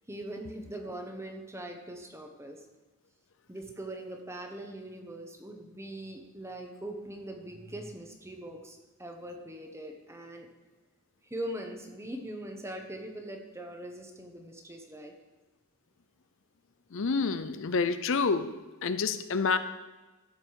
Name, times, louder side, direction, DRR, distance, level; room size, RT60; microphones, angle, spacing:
voice 1, 0.1-2.6 3.5-10.5 11.2-15.1, right 1 dB, 15° right, 3 dB, 1.2 m, -41 dB
voice 2, 16.9-18.5 18.8-19.6, left 4 dB, 60° left, 11 dB, 0.6 m, -28 dB
13.0 x 5.5 x 6.4 m, 1.1 s
head